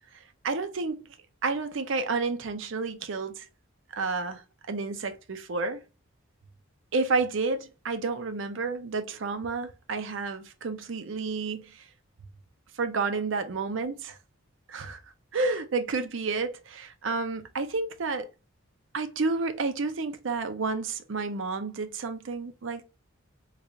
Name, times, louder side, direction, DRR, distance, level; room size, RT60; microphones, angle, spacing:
voice 1, 0.4-1.0 1.4-3.4 3.9-4.4 4.7-5.8 6.9-11.8 12.8-14.2 14.7-15.0 15.3-18.3 18.9-22.8, right 4 dB, 70° right, 0.5 m, -30 dB
3.2 x 2.4 x 3.7 m
head